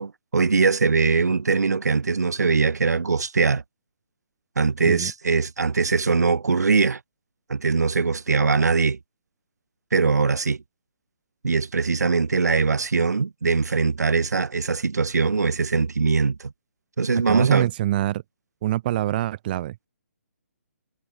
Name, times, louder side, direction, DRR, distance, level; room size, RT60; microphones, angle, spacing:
voice 1, 0.0-3.6 4.6-7.0 7.5-9.0 9.9-10.6 11.4-16.5 17.0-17.7, right 4 dB, 80° right, 4.9 m, -21 dB
voice 2, 17.3-18.2 18.6-19.9, right 14 dB, 35° right, 1.6 m, -25 dB
hypercardioid pair, 155°, 9 cm